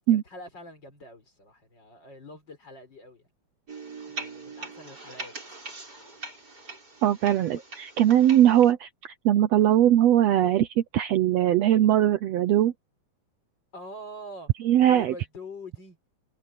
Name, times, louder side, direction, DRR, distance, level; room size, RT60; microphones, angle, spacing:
voice 1, 0.1-3.3 4.1-5.3 7.5-7.6 13.7-14.5 14.9-16.0, left 1 dB, 30° left, 5.4 m, -44 dB
sound 1, 3.7-8.7, right 3 dB, 25° right, 6.8 m, -41 dB
voice 2, 7.0-12.7 14.6-15.1, right 11 dB, 85° right, 1.4 m, -21 dB
omnidirectional pair, 4.0 m